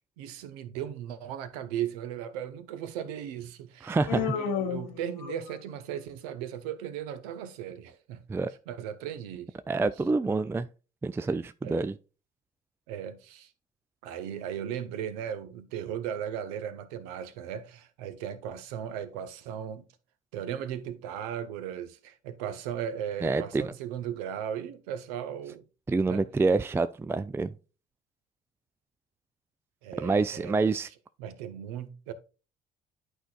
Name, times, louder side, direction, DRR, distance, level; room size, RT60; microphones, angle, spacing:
voice 1, 0.0-8.2 8.7-9.5 11.6-11.8 12.9-13.5 14.0-19.9 20.3-25.6 26.1-26.3 29.8-30.6 31.2-32.1, right 9 dB, 70° right, 0.8 m, -37 dB
voice 2, 3.8-4.2 8.3-8.5 9.7-10.7 11.0-11.9 23.2-23.7 25.9-27.5 30.0-30.9, right 3 dB, 10° right, 0.4 m, -27 dB
Human voice, 4.1-5.8, left 10 dB, 70° left, 0.9 m, -33 dB
11.5 x 4.5 x 2.3 m
hypercardioid pair, 50°, 20 cm